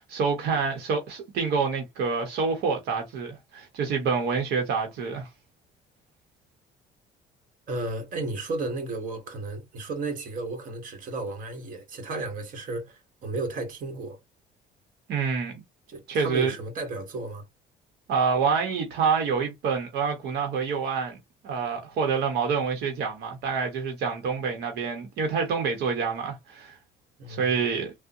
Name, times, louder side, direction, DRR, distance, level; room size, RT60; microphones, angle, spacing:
voice 1, 0.0-5.3 15.1-15.6 16.1-16.5 18.1-21.2 21.4-26.8 27.3-27.9, right 5 dB, 80° right, 0.9 m, -27 dB
voice 2, 7.7-14.2 15.9-17.4 27.2-27.5, right 2 dB, 55° right, 1.2 m, -33 dB
3.5 x 2.1 x 2.6 m
cardioid pair, 110°, 17 cm